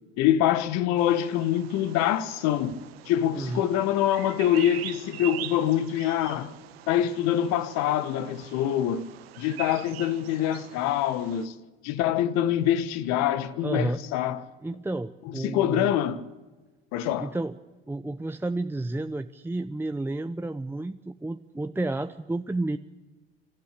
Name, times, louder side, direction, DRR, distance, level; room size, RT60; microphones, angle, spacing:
voice 1, 0.2-2.8 3.0-6.5 6.9-9.1 9.4-11.5 11.8-14.4 15.2-16.2 16.9-17.3, left 11 dB, 60° left, 1.5 m, -25 dB
Bird vocalization bird call bird song, 1.0-11.5, right 13 dB, 75° right, 1.3 m, -43 dB
voice 2, 3.3-3.7 13.6-14.0 14.6-15.9 17.2-17.6 17.9-22.8, right 2 dB, 5° right, 0.7 m, -31 dB
26.5 x 13.5 x 8.5 m
hypercardioid pair, 65°, 30 cm